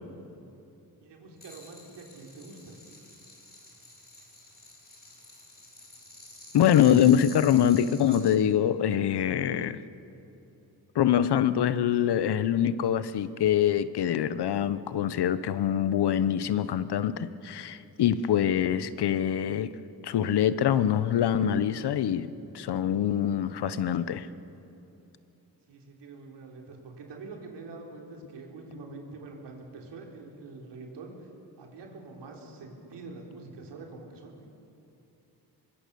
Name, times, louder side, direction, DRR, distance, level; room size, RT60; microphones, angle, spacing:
voice 1, 1.0-2.8 25.7-31.3 31.6-34.5, right 3 dB, 90° right, 0 dB, 3.9 m, -45 dB
sound 1, 1.4-8.4, left 2 dB, 25° left, 6.3 m, -49 dB
voice 2, 6.5-9.8 10.9-19.7 20.0-24.3, left 10 dB, 75° left, 14 dB, 1.0 m, -24 dB
24.5 x 23.0 x 7.0 m, 2.9 s
cardioid pair, 115°, 41 cm